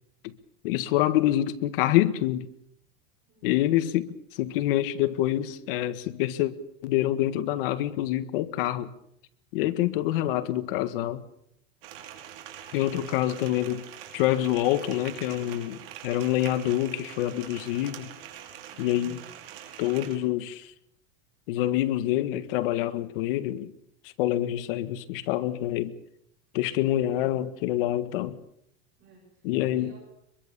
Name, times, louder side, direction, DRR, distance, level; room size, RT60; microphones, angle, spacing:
voice 1, 0.6-2.5 3.4-6.5 6.8-8.9 9.5-11.2 12.7-13.9 14.1-15.8 16.0-18.1 18.8-19.2 19.8-20.7 21.5-23.7 24.2-26.0 26.5-28.4 29.4-29.9, left 13 dB, 65° left, 1.7 m, -26 dB
voice 2, 3.3-3.8 18.7-19.3 26.9-27.5 29.0-30.0, right 3 dB, 35° right, 8.0 m, -55 dB
sound 1, 11.8-20.2, right 10 dB, 75° right, 5.2 m, -44 dB
24.5 x 22.5 x 7.0 m
supercardioid pair, 170°, 29 cm